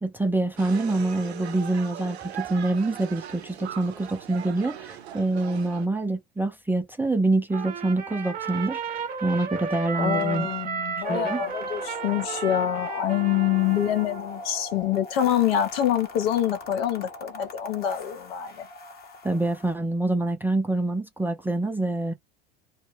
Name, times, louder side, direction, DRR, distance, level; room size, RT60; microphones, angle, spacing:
voice 1, 0.0-10.5 11.0-11.4 19.2-22.1, right 2 dB, 5° right, 0.4 m, -26 dB
sound 1, 0.6-5.9, right 10 dB, 90° right, 0.5 m, -39 dB
Trumpet, 7.5-14.2, right 6 dB, 30° right, 0.9 m, -33 dB
voice 2, 10.0-18.7, left 11 dB, 70° left, 0.9 m, -26 dB
sound 2, 11.0-19.7, left 2 dB, 30° left, 0.8 m, -41 dB
2.1 x 2.0 x 3.2 m
hypercardioid pair, 80°, 31 cm